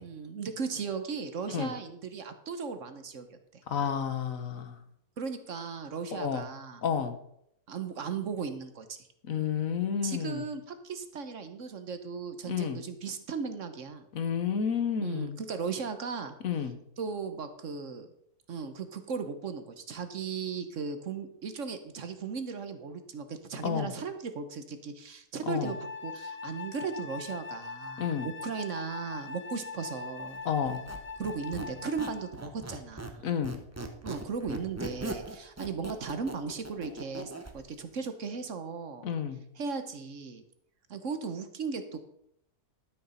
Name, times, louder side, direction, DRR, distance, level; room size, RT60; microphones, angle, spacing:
voice 1, 0.0-3.6 5.2-6.8 7.7-9.1 10.0-14.0 15.0-16.3 17.0-18.1 18.5-25.8 26.0-30.4 31.2-33.2 34.0-39.1 39.5-40.4 40.9-42.0, right 5 dB, 55° right, 9 dB, 1.3 m, -37 dB
voice 2, 3.7-4.8 6.1-6.4 6.8-7.1 9.3-10.4 12.5-12.8 14.1-15.4 16.4-16.7 23.6-23.9 25.5-25.7 28.0-28.3 30.4-30.8 33.2-33.6 39.0-39.4, left 7 dB, 65° left, 9 dB, 1.4 m, -30 dB
Wind instrument woodwind instrument, 25.6-32.4, left 4 dB, 40° left, 0.5 m, -41 dB
Squeak, 30.7-33.2 33.4-37.5, right 2 dB, 15° right, 0.8 m, -40 dB
12.0 x 6.6 x 5.6 m, 0.73 s
omnidirectional pair, 1.6 m